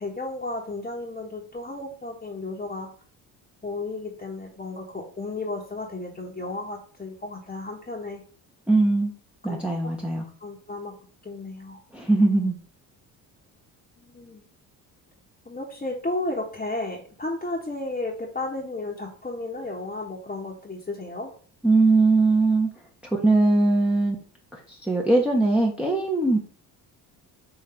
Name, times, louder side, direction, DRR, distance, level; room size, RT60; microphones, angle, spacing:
voice 1, 0.0-2.9 3.6-8.2 9.5-9.9 10.4-10.9 11.2-11.8 14.0-14.4 15.4-21.3, left 2 dB, 20° left, -4 dB, 1.2 m, -33 dB
voice 2, 8.7-9.1 9.4-10.2 11.9-12.5 21.6-22.7 23.2-24.2 24.5-26.4, right 2 dB, 5° right, -1 dB, 1.0 m, -20 dB
3.9 x 3.0 x 4.4 m, 0.43 s
supercardioid pair, 65°, 46 cm